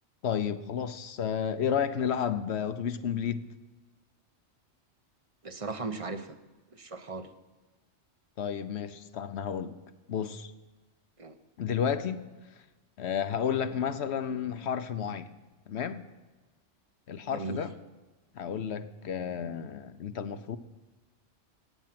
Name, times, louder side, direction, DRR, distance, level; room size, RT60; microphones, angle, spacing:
voice 1, 0.2-3.5 8.4-9.8 10.1-10.5 11.6-12.2 13.0-15.3 15.7-16.0 17.1-17.7 18.4-20.6, left 8 dB, 70° left, 11 dB, 1.0 m, -31 dB
voice 2, 5.4-6.4 6.7-7.3 11.2-11.3 17.3-17.6, right 3 dB, 30° right, 9 dB, 0.9 m, -37 dB
16.5 x 8.7 x 5.9 m, 1.2 s
omnidirectional pair, 1.2 m